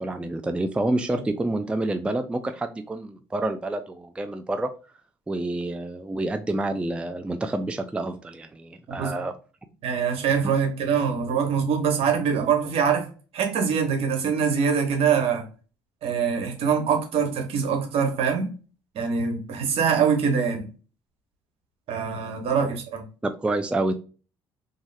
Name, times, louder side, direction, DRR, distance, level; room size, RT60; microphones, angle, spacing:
voice 1, 0.0-4.7 5.3-9.3 23.2-23.9, right 2 dB, 10° right, 0.3 m, -28 dB
voice 2, 9.8-13.1 13.3-15.5 16.0-18.5 18.9-20.7 21.9-23.0, right 6 dB, 65° right, 1.0 m, -24 dB
2.6 x 2.3 x 3.2 m
supercardioid pair, 75°, 11 cm